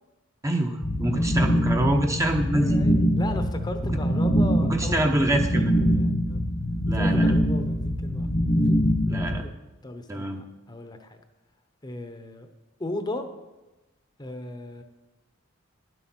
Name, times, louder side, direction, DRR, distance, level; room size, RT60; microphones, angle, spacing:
voice 1, 0.4-2.8 4.7-5.7 6.8-7.3 9.1-9.4 10.1-10.4, right 1 dB, 15° right, 3 dB, 0.8 m, -25 dB
sound 1, 0.8-9.4, equal, 45° left, 1.1 m, -23 dB
voice 2, 1.1-1.4 2.5-6.4 6.9-8.3 9.4-9.6 9.8-11.2 11.8-12.5 12.8-13.2 14.2-14.8, left 2 dB, 20° left, 6 dB, 0.9 m, -36 dB
11.0 x 8.0 x 6.1 m, 1.1 s
head